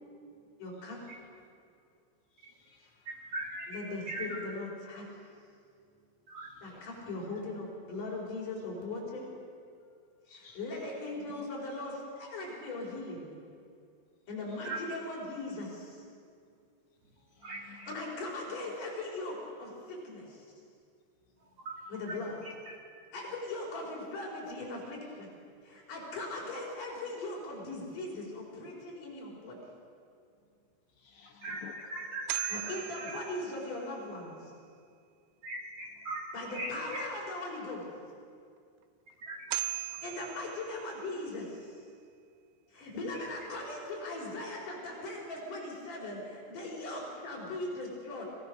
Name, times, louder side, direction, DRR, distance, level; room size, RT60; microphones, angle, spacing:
voice 1, 0.6-1.0 3.7-5.0 6.6-9.2 10.6-13.3 14.3-15.8 17.9-20.3 21.9-22.4 23.1-25.3 25.7-29.6 32.5-34.3 36.3-37.8 40.0-41.5 42.7-48.2, left 2 dB, 40° left, -3 dB, 6.0 m, -39 dB
voice 2, 2.3-3.2 6.4-7.1 10.3-10.6 14.5-14.7 17.2-18.1 21.9-22.0 30.9-31.9, left 8 dB, 75° left, 2 dB, 2.7 m, -55 dB
voice 3, 3.1-3.8 4.1-4.4 6.3-6.5 14.6-14.8 17.4-17.9 21.6-21.8 22.1-22.2 22.4-22.7 31.4-33.2 35.4-36.3 36.5-37.2 39.2-40.0, right 2 dB, 50° right, -1 dB, 2.2 m, -40 dB
sound 1, 32.1-34.2 39.1-39.2 39.5-41.4, right 16 dB, 80° right, 2.7 m, -39 dB
25.5 x 17.5 x 6.6 m, 2.3 s
omnidirectional pair, 5.7 m